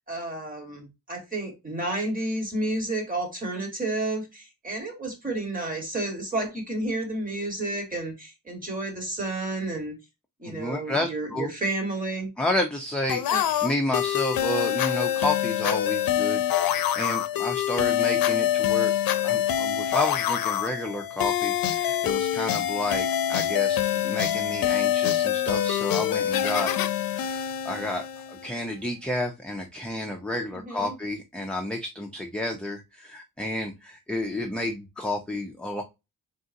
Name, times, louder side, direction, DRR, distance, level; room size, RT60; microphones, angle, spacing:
voice 1, 0.1-10.0 10.4-12.3 13.3-13.4 30.5-30.9, right 2 dB, 25° right, 1.6 m, -31 dB
voice 2, 10.4-11.5 12.4-18.9 19.2-26.7 27.1-35.8, left 1 dB, 5° left, 0.5 m, -31 dB
sound 1, 13.1-28.6, left 11 dB, 75° left, 0.5 m, -25 dB
3.8 x 3.8 x 2.6 m
wide cardioid pair, 145°, 35 cm